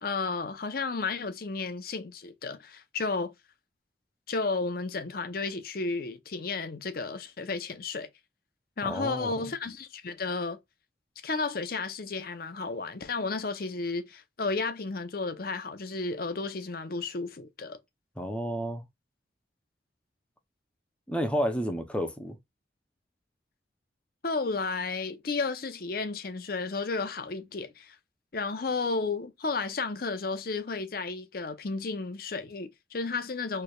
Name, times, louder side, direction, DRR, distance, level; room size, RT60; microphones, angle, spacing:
voice 1, 0.0-3.3 4.3-8.1 8.8-10.6 11.2-17.8 24.2-28.0 28.3-33.6, left 3 dB, 50° left, 0.7 m, -33 dB
voice 2, 8.8-9.4 18.2-18.8 21.1-22.4, equal, 5° left, 0.5 m, -31 dB
4.5 x 3.2 x 2.3 m
head